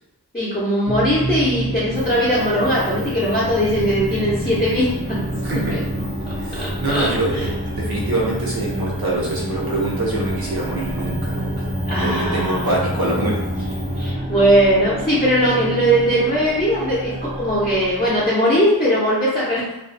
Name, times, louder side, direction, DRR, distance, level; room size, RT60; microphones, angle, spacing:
voice 1, 0.3-5.2 5.5-5.8 6.3-7.5 11.8-12.7 14.0-19.6, equal, 15° left, -9 dB, 0.7 m, -20 dB
sound 1, 0.9-18.3, right 1 dB, 25° right, 0.6 m, -29 dB
sound 2, 1.9-14.1, equal, 90° right, 0.9 m, -31 dB
voice 2, 5.4-5.9 6.4-11.7 12.0-13.6, right 1 dB, 65° right, -4 dB, 0.9 m, -25 dB
2.4 x 2.3 x 2.6 m, 0.93 s
wide cardioid pair, 75°, 40 cm